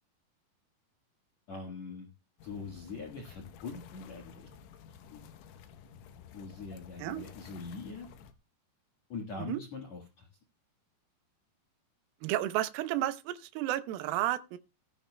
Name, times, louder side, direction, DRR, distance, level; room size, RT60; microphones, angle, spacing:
voice 1, 1.5-2.1 2.4-4.5 5.1-5.2 6.3-8.1 9.1-10.3, left 4 dB, 55° left, 2.2 m, -42 dB
sound 1, 2.4-8.3, left 7 dB, 85° left, 3.4 m, -53 dB
voice 2, 12.2-14.6, right 14 dB, 75° right, 2.2 m, -32 dB
16.5 x 14.0 x 2.2 m
omnidirectional pair, 5.1 m